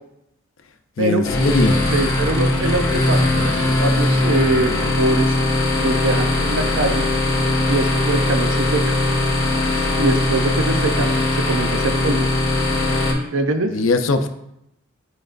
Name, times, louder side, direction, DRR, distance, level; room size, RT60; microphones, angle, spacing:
voice 1, 1.0-1.8 13.7-14.3, left 2 dB, 70° left, 7 dB, 0.6 m, -20 dB
sound 1, 1.2-13.1, left 2 dB, 20° left, 1.6 m, -20 dB
voice 2, 1.9-5.3 5.8-7.1 7.7-9.0 10.0-11.1 11.5-12.3 13.3-13.7, right 2 dB, 65° right, 7 dB, 0.6 m, -23 dB
10.0 x 4.8 x 2.6 m, 0.80 s
head